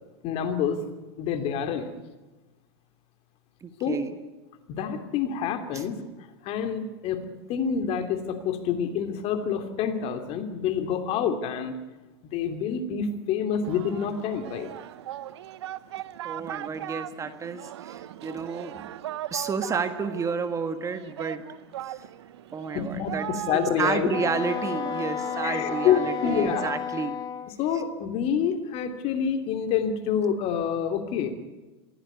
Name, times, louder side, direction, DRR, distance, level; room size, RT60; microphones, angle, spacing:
voice 1, 0.2-0.9 1.2-1.9 3.8-4.0 4.7-6.0 6.4-11.8 12.3-14.7 22.7-24.1 25.4-26.7 27.5-31.3, left 7 dB, 45° left, 7 dB, 3.0 m, -27 dB
voice 2, 3.6-4.1 5.7-5.8 16.2-18.9 19.3-21.4 21.8-22.0 22.5-23.3 23.5-27.2, right 5 dB, 20° right, 9 dB, 1.6 m, -31 dB
Singing, 13.6-26.7, right 13 dB, 75° right, 0.9 m, -39 dB
Wind instrument woodwind instrument, 24.1-27.5, left 8 dB, 30° left, 0.8 m, -32 dB
23.5 x 16.0 x 9.7 m, 1.2 s
hypercardioid pair, 105°, 14 cm